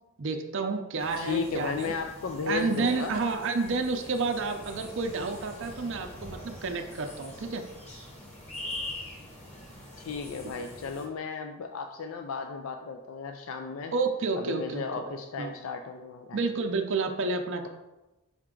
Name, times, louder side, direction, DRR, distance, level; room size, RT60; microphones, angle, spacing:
voice 1, 0.2-1.9 2.5-7.7 13.9-15.5 16.3-17.7, right 3 dB, 60° right, 5 dB, 0.5 m, -30 dB
sound 1, 1.0-11.1, left 1 dB, 30° left, 1.2 m, -43 dB
voice 2, 1.2-3.2 10.0-13.9 14.4-16.4, left 5 dB, 65° left, 5 dB, 0.4 m, -34 dB
5.8 x 4.4 x 3.7 m, 1.0 s
head